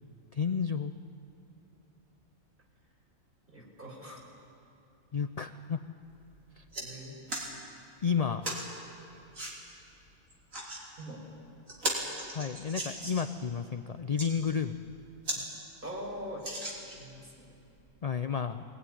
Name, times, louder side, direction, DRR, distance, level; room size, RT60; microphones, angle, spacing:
voice 1, 0.3-0.9 5.1-5.8 6.6-6.7 8.0-8.4 12.3-14.8 15.4-15.5 18.0-18.6, left 6 dB, 50° left, 9 dB, 0.4 m, -31 dB
voice 2, 3.5-4.2 6.8-7.2 11.0-11.2 15.8-16.4 16.9-17.6, equal, 40° right, -3 dB, 5.0 m, -42 dB
sound 1, 6.0-6.2 6.5-6.9 7.3-7.5 8.4-8.7 9.3-9.5 10.3-10.8 11.3-11.4 11.7-13.4 14.0-14.3 14.8-14.9 15.2-15.4 15.8-15.9 16.4-17.1 17.8-17.9, right 1 dB, 80° right, 3.8 m, -36 dB
21.0 x 18.0 x 10.0 m, 2.7 s
omnidirectional pair, 1.4 m